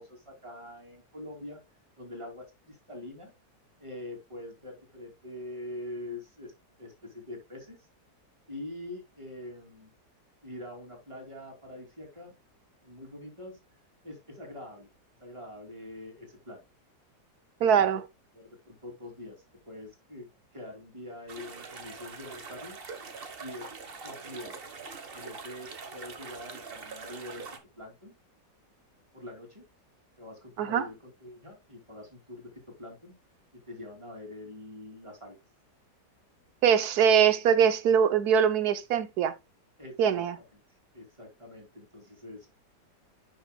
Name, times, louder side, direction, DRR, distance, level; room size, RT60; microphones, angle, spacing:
voice 1, 0.0-1.6 2.0-3.3 3.8-6.5 6.8-7.8 8.5-9.9 10.4-12.3 12.8-13.6 14.0-14.9 15.2-16.6 17.6-17.8 18.3-22.8 23.4-23.7 24.0-24.6 25.1-28.1 29.1-29.6 30.2-33.1 33.7-35.4 39.8-40.2 40.5-40.6 40.9-42.5, left 1 dB, 15° right, 2.7 m, -44 dB
voice 2, 17.6-18.0 30.6-30.8 36.6-39.3 40.0-40.4, right 8 dB, 65° right, 1.2 m, -22 dB
sound 1, 21.3-27.6, right 4 dB, 35° right, 1.1 m, -43 dB
10.5 x 6.2 x 2.2 m
omnidirectional pair, 2.0 m